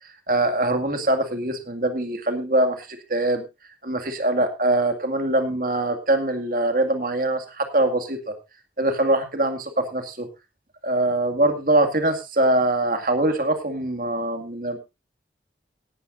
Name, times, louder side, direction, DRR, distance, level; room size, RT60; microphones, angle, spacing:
voice 1, 0.0-3.5 3.8-8.3 8.8-10.3 10.8-14.8, right 1 dB, 50° right, 6 dB, 2.2 m, -23 dB
17.5 x 11.5 x 2.6 m, 0.26 s
head